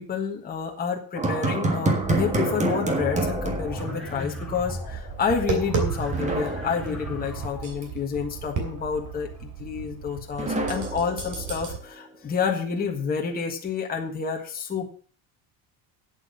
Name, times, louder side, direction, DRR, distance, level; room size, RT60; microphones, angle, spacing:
voice 1, 0.0-14.9, left 6 dB, 20° left, 0 dB, 1.6 m, -29 dB
sound 1, 1.1-4.5 4.8-4.9 6.1-7.5 10.4-11.9, right 2 dB, 15° right, 1.5 m, -28 dB
sound 2, 2.0-7.7, equal, ahead, 3.1 m, -36 dB
Tap, 5.1-11.8, right 4 dB, 40° right, 3.0 m, -33 dB
8.7 x 8.1 x 6.9 m, 0.43 s
cardioid pair, 175°, 48 cm